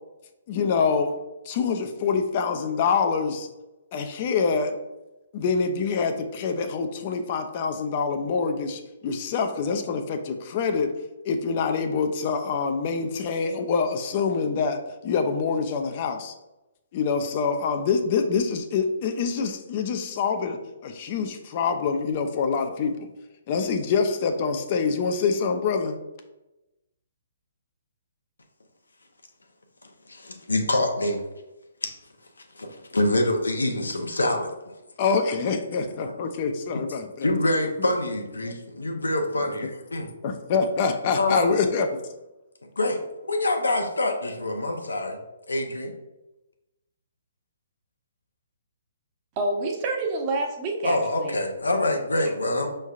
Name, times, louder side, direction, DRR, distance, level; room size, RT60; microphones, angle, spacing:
voice 1, 0.5-1.2 1.5-3.5 3.9-4.8 5.3-10.9 11.3-16.3 16.9-23.1 23.5-26.0 35.0-37.3 38.4-38.5 40.2-41.9, left 5 dB, 40° left, 6 dB, 0.4 m, -25 dB
voice 2, 30.1-31.2 31.8-31.9 32.5-34.5 37.2-40.1 41.2-41.5 42.8-45.2 45.5-45.9 50.8-52.7, left 1 dB, 85° left, 4 dB, 0.7 m, -25 dB
voice 3, 49.4-51.3, right 2 dB, 30° right, 1 dB, 0.8 m, -28 dB
5.2 x 3.2 x 2.4 m, 0.99 s
figure-of-eight pair, 135°, 0 cm